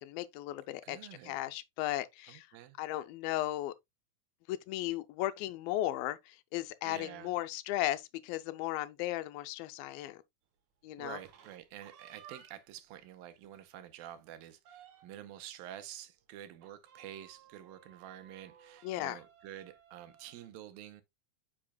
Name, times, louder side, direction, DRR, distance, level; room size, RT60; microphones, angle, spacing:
voice 1, 0.0-1.0 1.2-2.5 2.8-3.7 4.5-10.2 10.8-11.2 18.8-19.2, left 15 dB, 90° left, 2.4 m, -36 dB
voice 2, 0.8-1.4 2.3-2.8 6.8-7.3 11.0-21.0, right 11 dB, 90° right, 2.6 m, -49 dB
sound 1, 11.0-12.8 13.2-13.3 13.7-13.8 14.1-15.3 16.6-20.5, right 8 dB, 65° right, 2.2 m, -58 dB
8.7 x 6.1 x 2.2 m
omnidirectional pair, 4.1 m